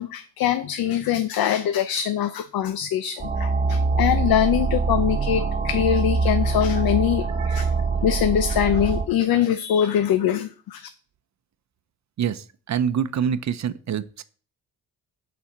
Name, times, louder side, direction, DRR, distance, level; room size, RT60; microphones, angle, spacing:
voice 1, 0.0-7.7 8.0-10.9, left 10 dB, 80° left, 11 dB, 0.6 m, -23 dB
sound 1, 3.2-9.0, right 4 dB, 25° right, 1.2 m, -24 dB
voice 2, 7.4-7.7 12.2-14.2, right 8 dB, 50° right, 13 dB, 0.6 m, -26 dB
8.6 x 4.2 x 7.2 m, 0.40 s
cardioid pair, 125°, 35 cm